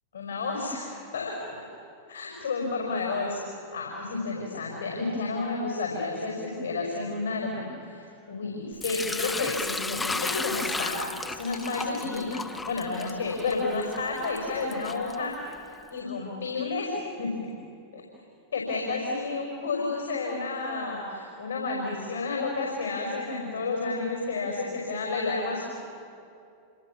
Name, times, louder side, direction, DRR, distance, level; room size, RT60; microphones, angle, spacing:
voice 1, 0.1-1.4 2.1-15.4 15.9-17.3 17.9-18.0 18.5-25.7, left 3 dB, 75° left, 0 dB, 5.4 m, -31 dB
Sink (filling or washing) / Liquid, 8.8-15.7, left 3 dB, 10° left, 1.0 m, -35 dB
27.5 x 26.5 x 7.3 m, 2.6 s
figure-of-eight pair, 90°, 0 cm